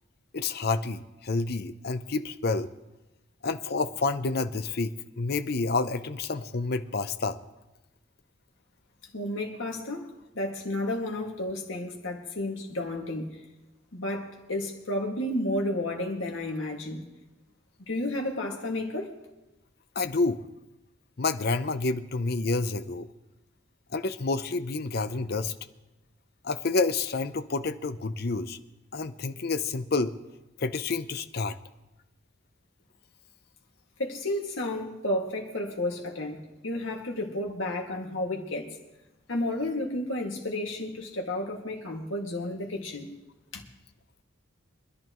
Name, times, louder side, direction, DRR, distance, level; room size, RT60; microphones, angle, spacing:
voice 1, 0.3-2.7 3.4-7.4 20.0-20.4 21.2-23.1 23.9-25.5 26.4-28.6 28.9-30.1 30.6-31.6, left 3 dB, 50° left, 11 dB, 0.6 m, -29 dB
voice 2, 9.1-13.4 13.9-17.0 17.9-19.1 34.0-38.7 39.3-43.1 43.5-43.6, left 1 dB, 75° left, 0 dB, 2.1 m, -32 dB
24.5 x 11.0 x 3.1 m, 1.0 s
head